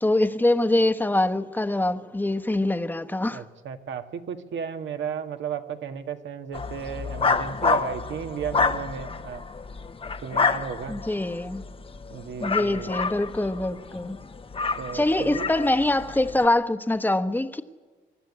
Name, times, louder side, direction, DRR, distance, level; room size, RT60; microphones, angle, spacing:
voice 1, 0.0-3.4 10.9-11.6 12.4-14.2 14.9-17.6, left 1 dB, 10° left, 1.2 m, -24 dB
voice 2, 3.3-9.4 10.2-11.0 12.1-12.9 14.8-15.5, right 7 dB, 70° right, 1.7 m, -34 dB
sound 1, 6.5-16.5, left 4 dB, 25° left, 0.9 m, -29 dB
24.0 x 12.0 x 9.9 m
cardioid pair, 90°, 20 cm